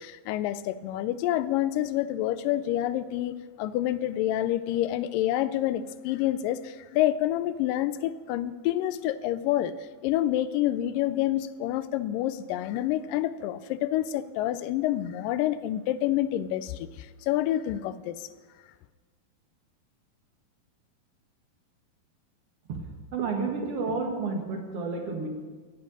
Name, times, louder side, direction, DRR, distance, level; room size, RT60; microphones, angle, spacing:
voice 1, 0.0-9.7 10.0-18.3, left 13 dB, 80° left, 14 dB, 2.1 m, -28 dB
voice 2, 23.1-25.3, right 4 dB, 50° right, 3 dB, 2.2 m, -30 dB
14.5 x 5.5 x 8.8 m, 1.4 s
omnidirectional pair, 4.1 m